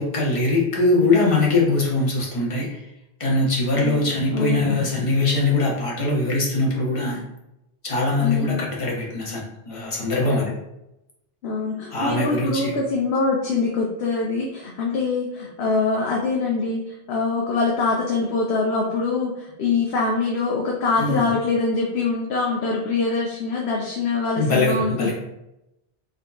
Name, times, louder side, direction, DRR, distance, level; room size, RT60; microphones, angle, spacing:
voice 1, 0.0-2.9 3.2-7.2 7.8-10.5 11.9-12.7 21.0-21.3 24.4-25.1, left 2 dB, 35° left, -4 dB, 1.0 m, -22 dB
voice 2, 4.3-4.8 8.2-8.6 11.4-25.1, left 3 dB, 85° left, -2 dB, 0.9 m, -24 dB
3.8 x 2.8 x 3.4 m, 0.90 s
omnidirectional pair, 1.0 m